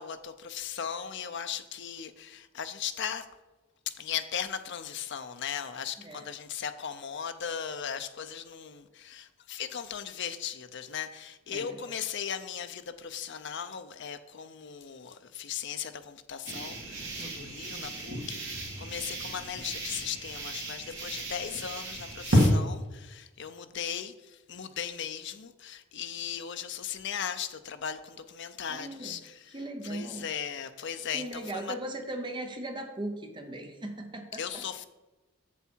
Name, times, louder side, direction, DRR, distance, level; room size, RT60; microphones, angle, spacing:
voice 1, 0.0-3.3 3.9-29.6 29.8-31.7 34.4-34.8, left 8 dB, 60° left, 9 dB, 0.6 m, -37 dB
voice 2, 11.5-11.8 17.2-17.5 28.7-29.2 29.5-30.3 31.1-34.6, right 1 dB, 20° right, 4 dB, 0.8 m, -38 dB
sound 1, 16.4-22.5, equal, 60° right, 2.0 m, -31 dB
7.2 x 7.2 x 4.5 m, 1.1 s
head